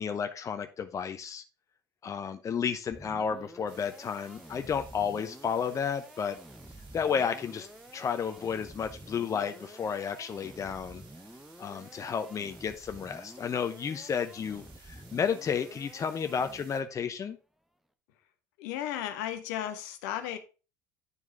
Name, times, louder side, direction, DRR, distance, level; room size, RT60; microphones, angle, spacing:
voice 1, 0.0-1.4 2.0-6.4 6.9-7.7 7.9-11.0 11.6-17.4, left 7 dB, 30° left, 8 dB, 0.7 m, -32 dB
sound 1, 2.9-17.0, right 1 dB, ahead, 0.9 m, -50 dB
sound 2, 3.7-16.8, right 4 dB, 55° right, 2.1 m, -57 dB
voice 2, 18.6-20.4, left 11 dB, 65° left, 8 dB, 1.1 m, -34 dB
9.7 x 4.8 x 3.7 m, 0.32 s
figure-of-eight pair, 65°, 10 cm